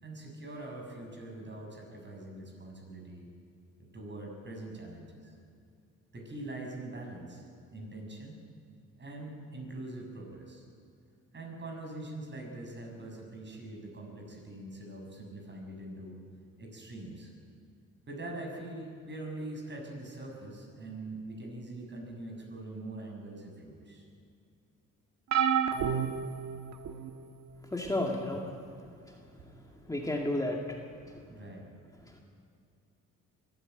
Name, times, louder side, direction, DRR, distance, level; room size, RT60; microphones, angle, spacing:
voice 1, 0.0-3.3 3.9-5.3 6.1-7.4 7.7-8.4 9.0-10.7 11.3-16.2 16.6-17.3 18.1-24.0 31.2-31.7, right 2 dB, 35° right, 1 dB, 6.7 m, -43 dB
sound 1, 25.3-27.1 27.8-28.1 29.4-29.5, right 8 dB, 70° right, 1.4 m, -30 dB
voice 2, 27.7-28.5 29.1-29.2 29.9-30.8 32.1-32.2, left 1 dB, 10° left, 0 dB, 2.1 m, -32 dB
22.5 x 13.5 x 9.0 m, 2.4 s
cardioid pair, 90°, 30 cm